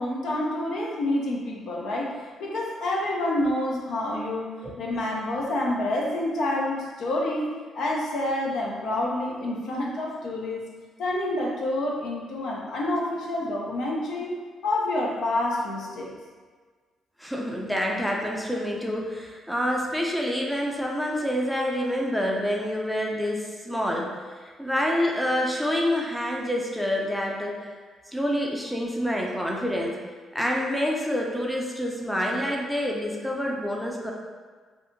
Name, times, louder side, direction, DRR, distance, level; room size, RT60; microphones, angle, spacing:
voice 1, 0.0-2.1 2.4-10.6 11.0-14.3 14.6-16.1, left 1 dB, 70° left, -2 dB, 0.5 m, -28 dB
voice 2, 17.2-24.1 24.6-27.5 28.1-30.0 30.3-34.1, equal, ahead, -2 dB, 0.4 m, -27 dB
2.7 x 2.4 x 2.5 m, 1.5 s
cardioid pair, 90°, 0 cm